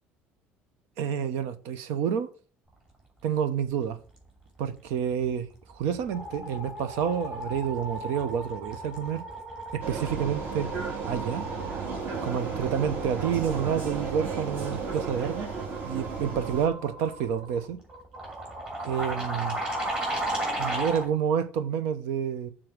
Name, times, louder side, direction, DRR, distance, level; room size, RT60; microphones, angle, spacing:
voice 1, 1.0-2.3 3.2-4.0 4.6-9.2 9.7-10.7 11.0-11.5 12.2-15.5 15.8-17.8 18.8-19.6 20.6-22.5, right 8 dB, 80° right, 0.9 m, -29 dB
sound 1, 5.2-5.5 5.8-21.1, right 1 dB, 20° right, 2.8 m, -36 dB
Vehicle, 9.8-16.7, right 5 dB, 45° right, 2.1 m, -34 dB
6.9 x 3.8 x 6.0 m
cardioid pair, 160°, 4 cm